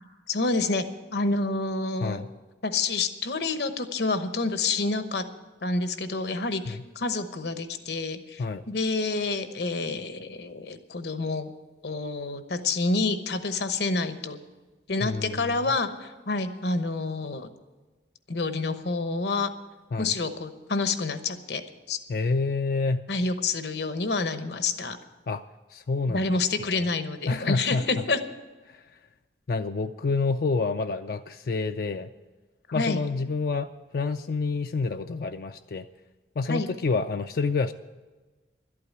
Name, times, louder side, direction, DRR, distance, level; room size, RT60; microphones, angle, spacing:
voice 1, 0.3-0.8 1.1-2.3 2.6-5.2 5.6-11.5 11.8-14.4 14.9-17.5 18.3-19.5 20.0-21.6 21.9-22.0 23.1-25.0 26.1-28.2 32.7-33.0 36.5-36.7, left 3 dB, 70° left, 9 dB, 1.0 m, -28 dB
voice 2, 15.0-15.5 19.9-20.1 22.1-23.0 25.3-25.4 25.7-26.2 26.6-26.8 27.3-27.8 29.5-32.1 32.7-33.7 33.9-35.9 36.4-37.7, left 4 dB, 55° left, 7 dB, 0.4 m, -28 dB
12.0 x 8.6 x 9.3 m, 1.3 s
head